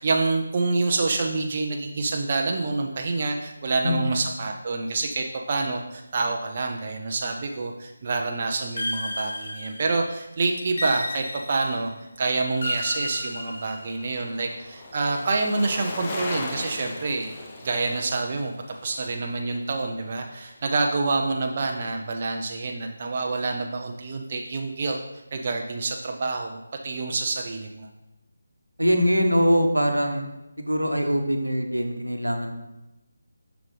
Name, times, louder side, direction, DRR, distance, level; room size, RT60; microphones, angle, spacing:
voice 1, 0.0-11.9 12.2-17.4 17.6-18.5 18.8-25.0 25.3-27.9, right 3 dB, 35° right, 2 dB, 0.5 m, -27 dB
voice 2, 3.8-4.2 28.8-30.2 30.6-32.5, equal, 85° right, 5 dB, 1.0 m, -23 dB
sound 1, 8.8-10.1 10.8-11.9 12.6-14.1, left 1 dB, 60° left, 1.3 m, -32 dB
Bicycle, 12.5-20.7 21.0-21.1, left 2 dB, 25° left, 0.9 m, -39 dB
7.3 x 5.9 x 3.2 m, 0.96 s
figure-of-eight pair, 155°, 0 cm